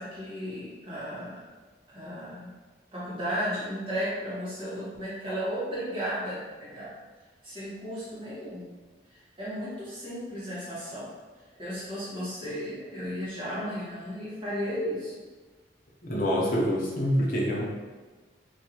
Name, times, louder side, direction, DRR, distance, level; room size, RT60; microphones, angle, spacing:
voice 1, 0.0-1.4 1.9-2.5 2.9-6.9 7.4-8.7 9.1-11.1 11.6-15.1, equal, 30° right, -10 dB, 1.3 m, -34 dB
voice 2, 16.0-17.6, equal, 50° left, -3 dB, 0.8 m, -26 dB
3.9 x 2.7 x 2.9 m, 1.3 s
head